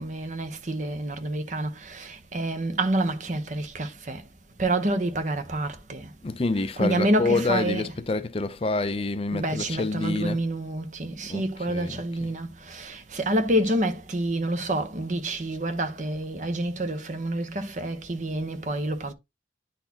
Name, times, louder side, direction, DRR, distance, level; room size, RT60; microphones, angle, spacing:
voice 1, 0.0-4.2 4.6-6.1 6.8-7.8 9.3-19.1, right 1 dB, 45° right, 0.9 m, -28 dB
voice 2, 6.2-10.4 11.3-12.3, left 3 dB, 30° left, 0.5 m, -28 dB
9.8 x 4.1 x 2.8 m
head